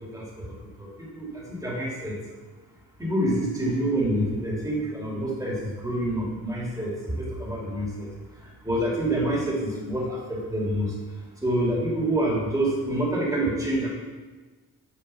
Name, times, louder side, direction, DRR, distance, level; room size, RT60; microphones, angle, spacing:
voice 1, 0.0-2.2 3.0-8.1 8.4-11.0 11.4-13.9, right 1 dB, 10° right, -4 dB, 2.6 m, -27 dB
8.2 x 5.2 x 5.5 m, 1.3 s
wide cardioid pair, 110°, 38 cm